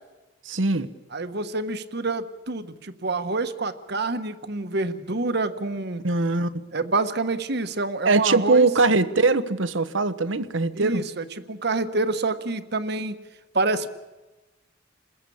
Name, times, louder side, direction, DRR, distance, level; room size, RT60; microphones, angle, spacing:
voice 1, 0.4-0.9 6.0-6.5 8.0-11.0, right 3 dB, 85° right, 13 dB, 1.2 m, -21 dB
voice 2, 1.1-6.0 6.7-8.7 10.7-13.2 13.5-13.9, right 3 dB, 60° right, 10 dB, 1.4 m, -27 dB
28.5 x 21.0 x 8.6 m, 1.2 s
head